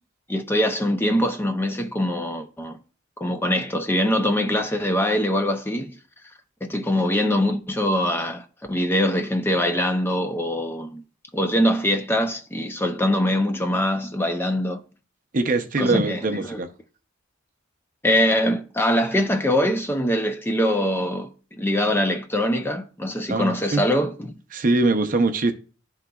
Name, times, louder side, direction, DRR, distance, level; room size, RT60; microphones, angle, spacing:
voice 1, 0.3-2.8 3.2-6.0 6.6-11.0 11.3-14.8 15.8-16.6 18.0-21.3 21.6-24.3, left 1 dB, 10° left, 0.4 m, -23 dB
voice 2, 15.3-16.7 23.3-23.8 24.5-25.5, right 3 dB, 40° right, 0.6 m, -22 dB
11.5 x 3.9 x 2.3 m
head